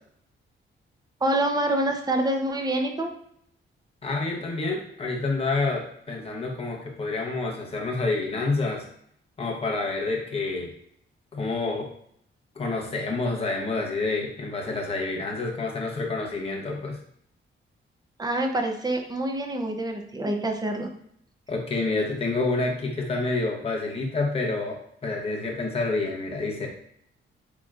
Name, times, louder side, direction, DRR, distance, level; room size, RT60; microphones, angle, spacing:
voice 1, 1.2-3.1 18.2-20.9, right 1 dB, 20° right, 3 dB, 0.6 m, -26 dB
voice 2, 4.0-8.8 9.4-10.7 11.3-11.9 12.6-17.0 21.5-26.7, left 3 dB, 30° left, 0 dB, 0.9 m, -28 dB
7.0 x 2.9 x 2.4 m, 0.67 s
wide cardioid pair, 165°, 21 cm